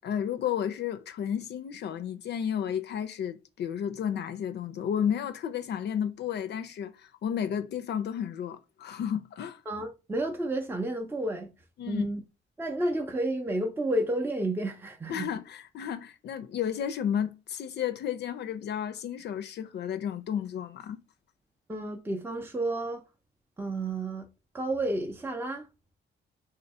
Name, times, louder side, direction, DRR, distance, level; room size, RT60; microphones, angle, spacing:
voice 1, 0.0-9.6 11.8-12.1 15.1-21.0, left 9 dB, 60° left, 0.4 m, -32 dB
voice 2, 9.7-11.5 11.9-12.2 12.6-15.3 21.7-23.0 23.6-24.3 24.5-25.7, right 1 dB, 10° right, 0.5 m, -31 dB
2.7 x 2.5 x 4.1 m
cardioid pair, 90°, 20 cm